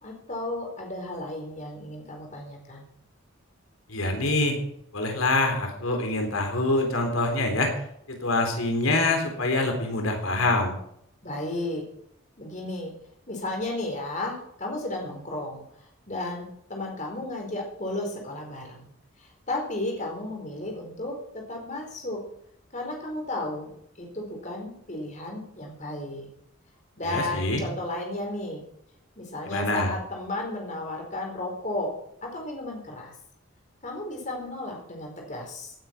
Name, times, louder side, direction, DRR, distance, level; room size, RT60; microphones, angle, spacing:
voice 1, 0.0-2.9 11.2-11.9 12.4-12.9 13.3-18.9 19.2-22.2 22.7-26.3 27.0-28.6 29.2-31.9 32.2-33.1 33.8-35.7, left 2 dB, 35° left, 1 dB, 4.4 m, -34 dB
voice 2, 3.9-4.6 4.9-10.7 27.1-27.6 29.5-29.9, left 2 dB, 90° left, 3 dB, 3.8 m, -25 dB
18.0 x 9.0 x 6.0 m, 0.72 s
head